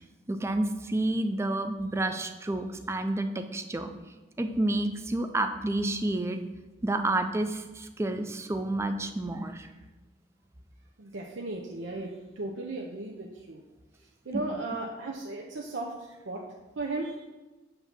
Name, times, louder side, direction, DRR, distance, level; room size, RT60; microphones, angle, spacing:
voice 1, 0.3-3.9 4.4-6.4 6.8-9.7 14.3-14.4, right 2 dB, 15° right, 7 dB, 0.3 m, -29 dB
voice 2, 11.0-13.6 14.3-15.9 16.2-16.4 16.8-17.2, right 2 dB, 85° right, -1 dB, 0.6 m, -35 dB
7.7 x 2.7 x 5.8 m, 1.2 s
head